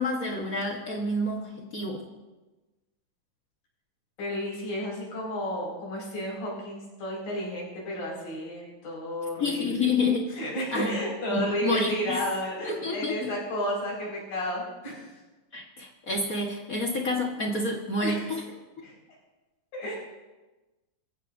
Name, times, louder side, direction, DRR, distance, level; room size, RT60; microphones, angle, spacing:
voice 1, 0.0-2.0 9.4-10.3 10.7-11.0 11.3-12.2 12.6-13.3 15.5-18.4, left 2 dB, 60° left, -1 dB, 0.9 m, -29 dB
voice 2, 4.2-9.9 10.3-15.2 18.0-18.2 18.8-18.9 19.7-20.0, equal, 80° left, -3 dB, 7.0 m, -32 dB
23.5 x 15.0 x 2.7 m, 1.1 s
omnidirectional pair, 3.9 m